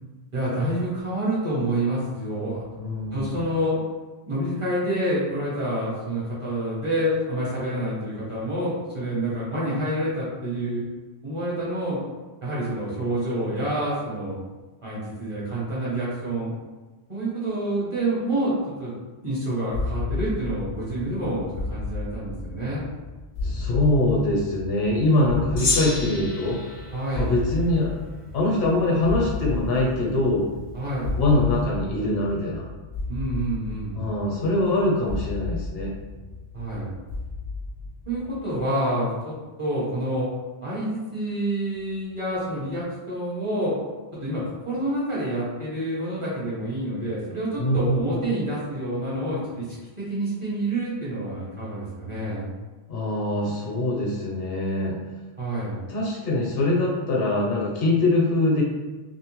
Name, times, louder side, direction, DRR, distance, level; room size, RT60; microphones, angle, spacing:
voice 1, 0.3-2.7 3.1-3.8 4.3-10.8 11.2-12.0 12.4-14.4 14.8-16.5 17.1-18.9 19.2-22.8 26.9-27.3 30.7-31.2 33.1-34.0 36.5-36.9 38.1-39.3 39.6-40.3 40.6-43.8 44.1-49.7 50.0-52.5 55.4-55.8, right 1 dB, 35° right, -8 dB, 0.7 m, -28 dB
voice 2, 2.8-3.4 23.4-26.6 27.2-27.9 28.3-30.5 31.2-32.7 33.9-35.9 47.6-48.2 52.9-54.9 55.9-58.6, left 2 dB, 65° left, -2 dB, 0.8 m, -23 dB
sound 1, 19.7-38.6, left 3 dB, 80° right, 1.2 m, -33 dB
Gong, 25.6-28.2, left 3 dB, 45° left, 0.4 m, -30 dB
2.6 x 2.0 x 2.9 m, 1.2 s
omnidirectional pair, 1.1 m